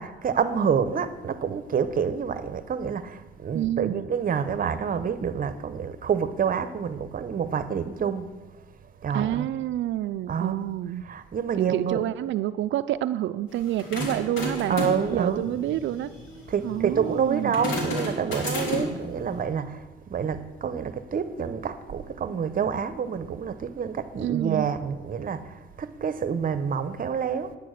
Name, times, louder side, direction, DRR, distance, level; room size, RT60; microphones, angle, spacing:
voice 1, 0.0-8.3 9.0-9.5 10.3-10.6 11.0-12.0 14.7-15.5 16.5-19.8 20.1-27.6, right 7 dB, 45° right, 0.8 m, -28 dB
voice 2, 3.5-4.1 9.1-11.0 11.6-14.8 15.1-16.1 16.6-17.6 24.2-24.7, right 13 dB, 70° right, 0.4 m, -28 dB
sound 1, 13.5-19.1, left 1 dB, 85° left, 3.1 m, -32 dB
9.9 x 8.5 x 6.4 m
cardioid pair, 90°, 20 cm